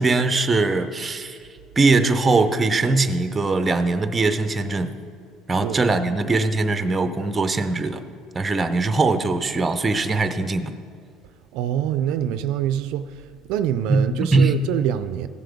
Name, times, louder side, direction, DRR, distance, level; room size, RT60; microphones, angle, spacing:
voice 1, 0.0-1.4 1.8-4.9 5.5-8.0 8.3-10.7 13.9-14.6, right 3 dB, 15° right, 9 dB, 0.5 m, -21 dB
voice 2, 11.5-15.3, right 10 dB, 70° right, 12 dB, 0.4 m, -25 dB
16.0 x 7.6 x 3.5 m, 2.2 s
cardioid pair, 145°, 0 cm